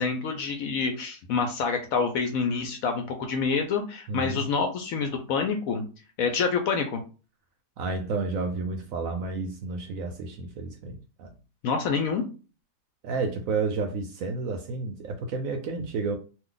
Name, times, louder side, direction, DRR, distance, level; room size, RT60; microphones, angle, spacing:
voice 1, 0.0-5.8 6.2-7.0 11.6-12.2, left 5 dB, 70° left, 5 dB, 0.9 m, -27 dB
voice 2, 4.1-4.5 7.8-11.3 13.0-16.2, right 4 dB, 70° right, 5 dB, 0.8 m, -31 dB
2.6 x 2.3 x 3.7 m, 0.34 s
omnidirectional pair, 1.8 m